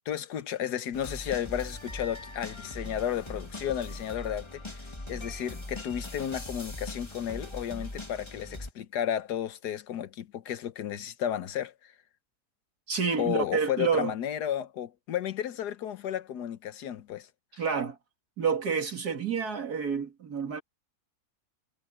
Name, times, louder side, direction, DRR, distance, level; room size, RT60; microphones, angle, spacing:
voice 1, 0.0-4.8 5.1-11.9 13.2-17.3, left 10 dB, 85° left, 1.6 m, -33 dB
sound 1, 0.9-8.7, left 2 dB, 15° left, 2.0 m, -40 dB
voice 2, 12.9-14.1 17.6-18.0 18.4-20.6, right 6 dB, 75° right, 2.7 m, -29 dB
omnidirectional pair, 1.7 m